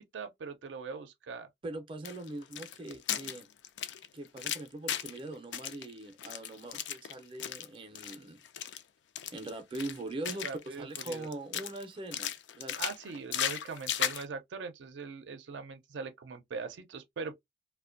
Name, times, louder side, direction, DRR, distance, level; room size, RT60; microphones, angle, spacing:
voice 1, 0.0-1.5 10.4-11.3 12.8-17.3, right 5 dB, 85° right, 0.5 m, -41 dB
voice 2, 1.6-3.5 4.1-8.4 9.3-12.7, right 2 dB, 30° right, 0.4 m, -42 dB
sound 1, 2.0-5.2 5.5-7.7 8.0-8.2 8.4-8.8 9.2-10.7 11.0-11.8 12.1-14.2, left 10 dB, 80° left, 0.3 m, -36 dB
2.5 x 2.1 x 2.4 m
head